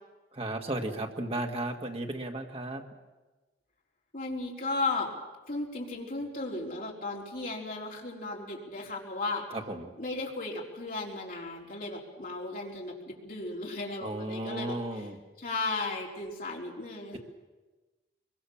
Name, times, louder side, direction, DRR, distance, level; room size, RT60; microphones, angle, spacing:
voice 1, 0.3-2.8 9.5-9.9 14.0-15.2 17.1-17.2, right 1 dB, 30° right, 3 dB, 1.9 m, -34 dB
voice 2, 4.1-5.1 5.5-9.4 10.0-15.1 15.4-17.2, left 3 dB, 50° left, -2 dB, 4.3 m, -35 dB
24.0 x 22.5 x 7.3 m, 1.2 s
head